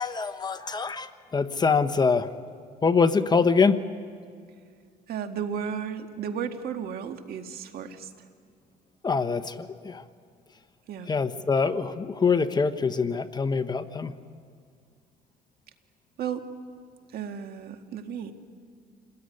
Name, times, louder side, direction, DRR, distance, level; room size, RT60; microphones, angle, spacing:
voice 1, 0.0-2.3 2.8-3.8 9.0-10.0 11.1-14.1, left 5 dB, 25° left, 10 dB, 1.1 m, -24 dB
voice 2, 5.1-8.1 10.9-11.1 16.2-16.5 17.1-18.3, right 7 dB, 65° right, 6 dB, 2.0 m, -34 dB
28.0 x 19.5 x 9.8 m, 2.1 s
cardioid pair, 110°, 17 cm